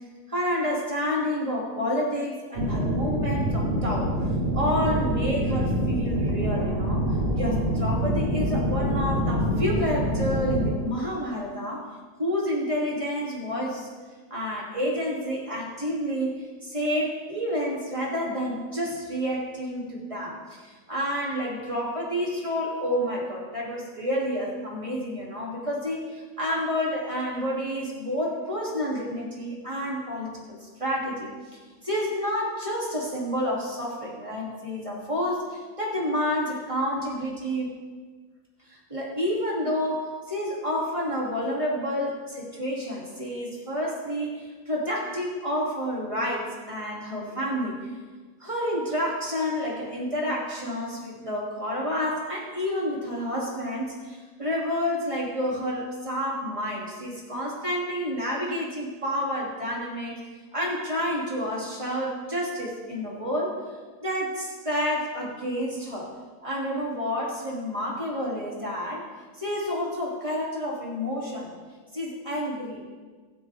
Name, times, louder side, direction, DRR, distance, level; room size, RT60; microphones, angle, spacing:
voice 1, 0.3-4.1 4.5-11.9 12.2-13.9 14.3-31.3 31.8-37.8 38.7-47.9 48.4-60.2 60.5-63.6 64.0-66.1 66.4-69.0 69.4-71.5 71.9-72.8, equal, 20° right, -4 dB, 3.0 m, -29 dB
sound 1, 2.6-10.8, equal, 40° right, 1.6 m, -25 dB
22.0 x 8.0 x 3.6 m, 1.4 s
omnidirectional pair, 1.7 m